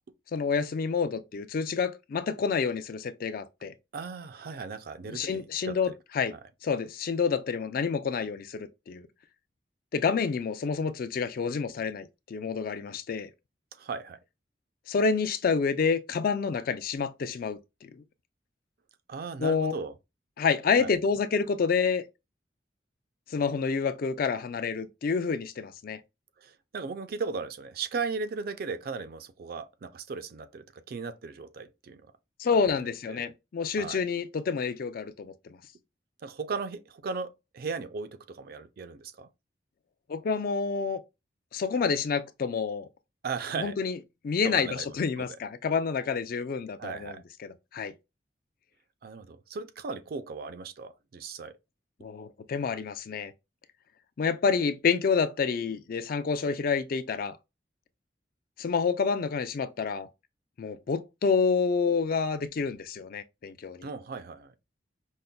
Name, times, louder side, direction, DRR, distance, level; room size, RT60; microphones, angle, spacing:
voice 1, 0.3-3.7 5.1-6.3 6.6-9.1 9.9-13.3 14.9-18.0 19.4-19.7 20.4-22.0 23.3-26.0 32.4-35.3 40.1-41.0 41.5-42.9 43.6-44.0 44.2-47.9 52.0-53.3 54.2-57.4 58.6-60.1 60.6-63.9, left 5 dB, 55° left, 0.4 m, -28 dB
voice 2, 3.9-5.9 13.8-14.2 19.1-19.9 20.8-20.9 26.4-32.1 32.5-32.6 33.1-33.3 33.8-34.0 36.2-39.3 43.2-43.8 44.4-44.9 45.2-45.4 46.8-47.2 49.0-51.6 63.8-64.5, right 4 dB, 55° right, 0.4 m, -37 dB
5.2 x 2.1 x 2.2 m
head